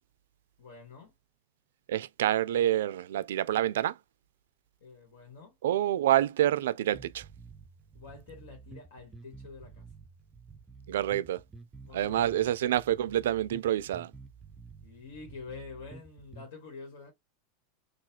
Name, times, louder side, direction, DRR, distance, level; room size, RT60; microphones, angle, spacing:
voice 1, 0.6-1.1 4.8-5.5 7.9-9.9 11.8-12.5 14.8-17.1, left 4 dB, 80° left, 1.5 m, -47 dB
voice 2, 1.9-3.9 5.6-7.2 10.9-11.4 11.9-14.1, right 12 dB, 90° right, 0.3 m, -27 dB
sound 1, 6.9-16.5, right 4 dB, 15° right, 0.4 m, -51 dB
4.0 x 2.3 x 2.7 m
supercardioid pair, 150°, 0 cm